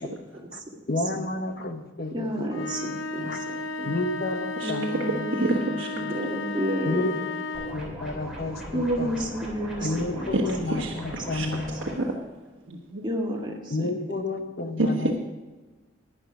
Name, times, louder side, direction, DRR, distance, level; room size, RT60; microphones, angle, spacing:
voice 1, 0.9-3.4 3.8-5.3 5.7-6.1 6.8-9.1 9.8-11.8 13.7-15.1, left 2 dB, 50° left, 7 dB, 1.0 m, -31 dB
voice 2, 2.1-3.9 4.6-7.1 8.7-10.7 11.3-11.4 11.7-11.8 13.0-13.9, equal, 20° right, 0 dB, 1.6 m, -31 dB
sound 1, 2.5-7.9, left 3 dB, 75° left, 0.9 m, -33 dB
voice 3, 5.4-5.9 10.3-10.4 10.7-11.5 12.0-12.1 12.7-13.0 14.8-15.1, right 2 dB, 70° right, 0 dB, 1.3 m, -27 dB
sound 2, 7.5-11.9, equal, ahead, 3.2 m, -39 dB
11.5 x 10.0 x 5.0 m, 1.2 s
head